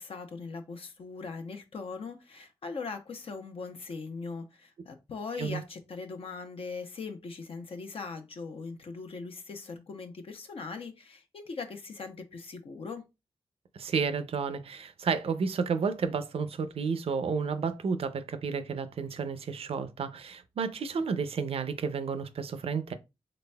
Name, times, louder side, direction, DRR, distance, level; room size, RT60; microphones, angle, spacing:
voice 1, 0.0-13.0, left 4 dB, 65° left, 0.7 m, -40 dB
voice 2, 13.7-22.9, right 5 dB, 75° right, 0.5 m, -31 dB
4.0 x 3.2 x 2.2 m
cardioid pair, 60°, 10 cm